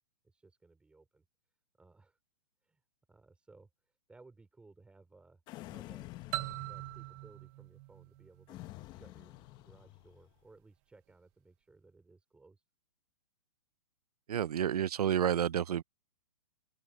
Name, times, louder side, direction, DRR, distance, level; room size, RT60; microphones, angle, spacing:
voice 1, 0.2-1.2 1.8-2.2 2.6-2.8 3.1-12.6, right 3 dB, 5° right, 3.3 m, -61 dB
sound 1, 5.5-7.3 8.5-10.3, left 18 dB, 20° left, 1.0 m, -49 dB
sound 2, 6.3-9.0, right 22 dB, 25° right, 0.7 m, -42 dB
voice 2, 14.3-15.8, right 9 dB, 80° right, 0.7 m, -30 dB
open air
hypercardioid pair, 155°, 19 cm